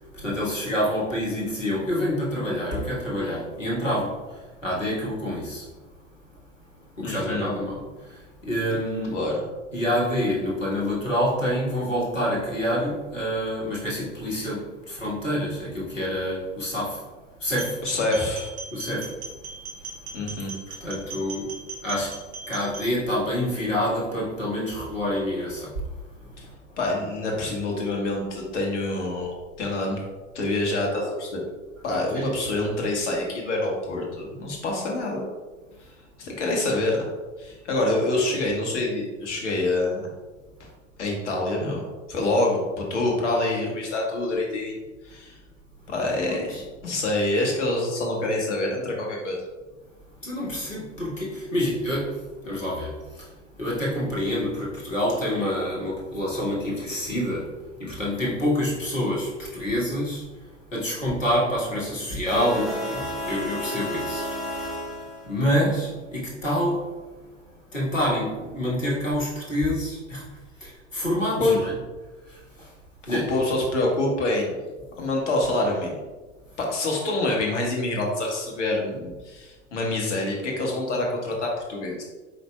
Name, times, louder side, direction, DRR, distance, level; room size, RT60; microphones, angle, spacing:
voice 1, 0.1-5.7 7.0-9.2 9.7-17.1 17.4-17.9 18.7-19.3 19.7-20.1 20.7-21.5 21.8-22.2 22.5-25.8 26.2-26.5 32.1-32.2 46.3-46.6 50.2-60.2 60.7-64.4 65.2-66.9 67.3-71.7 72.3-72.7 73.0-73.3, equal, 85° left, -5 dB, 1.4 m, -27 dB
voice 2, 7.0-7.5 9.1-9.4 17.8-18.5 20.1-20.5 26.8-29.3 29.6-30.0 30.3-31.3 31.8-35.2 36.2-37.1 37.4-40.1 41.0-41.8 42.1-44.8 45.0-45.3 45.9-46.6 46.8-49.4 71.4-71.6 73.1-74.5 75.0-76.0 76.6-82.0, left 2 dB, 70° left, -1 dB, 1.2 m, -26 dB
sound 1, 17.6-22.9, right 3 dB, 55° right, 1.3 m, -38 dB
sound 2, 62.3-65.5, left 1 dB, ahead, 1.3 m, -32 dB
5.0 x 4.2 x 2.2 m, 1.3 s
figure-of-eight pair, 80°, 37 cm